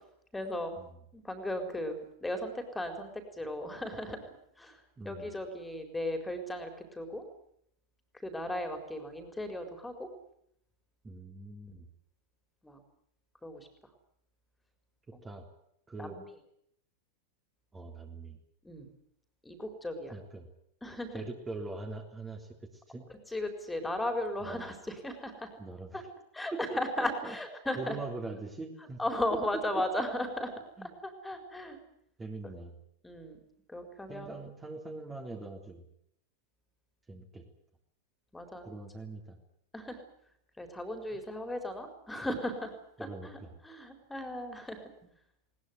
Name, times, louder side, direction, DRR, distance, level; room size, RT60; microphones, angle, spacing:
voice 1, 0.3-0.8 1.1-2.0 2.2-4.2 4.6-4.8 5.0-7.2 8.2-10.1 12.6-12.8 13.4-13.7 16.0-16.2 18.6-18.9 19.4-20.1 20.8-21.2 23.3-25.5 25.9-26.0 26.3-28.0 29.0-30.5 30.8-31.8 32.4-32.5 33.0-33.4 33.7-34.4 38.3-38.8 39.7-40.0 40.6-42.7 43.0-43.4 43.6-44.8, left 1 dB, 5° left, 6 dB, 4.3 m, -36 dB
voice 2, 5.0-5.3 11.0-11.9 15.2-15.5 15.9-16.2 17.7-18.4 20.1-20.5 21.1-23.1 24.4-24.7 25.6-26.1 26.5-27.4 27.8-29.0 29.3-29.8 30.8-30.9 32.2-32.7 34.1-35.8 37.1-37.4 38.7-39.4 41.1-41.2 43.0-43.5, right 3 dB, 15° right, 2 dB, 3.6 m, -42 dB
21.0 x 20.0 x 9.6 m, 0.73 s
figure-of-eight pair, 90°, 0 cm